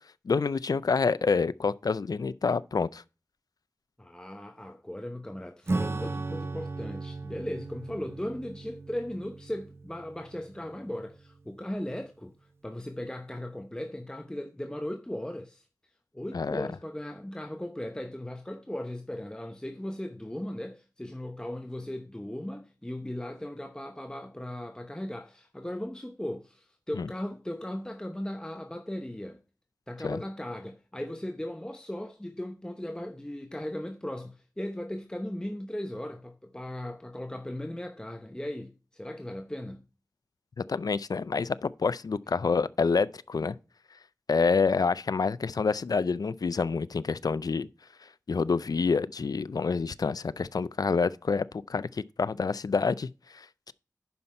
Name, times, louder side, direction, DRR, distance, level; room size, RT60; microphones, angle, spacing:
voice 1, 0.3-3.0 16.3-16.7 27.0-27.1 30.0-30.2 40.6-43.5 44.3-47.7 48.3-53.7, left 4 dB, 75° left, 0.4 m, -27 dB
voice 2, 4.0-12.3 12.6-15.6 16.1-29.4 29.9-39.8, left 1 dB, 10° left, 0.9 m, -37 dB
Acoustic guitar / Strum, 5.7-11.6, right 3 dB, 40° right, 0.5 m, -36 dB
9.6 x 5.7 x 4.3 m
wide cardioid pair, 65°, 7 cm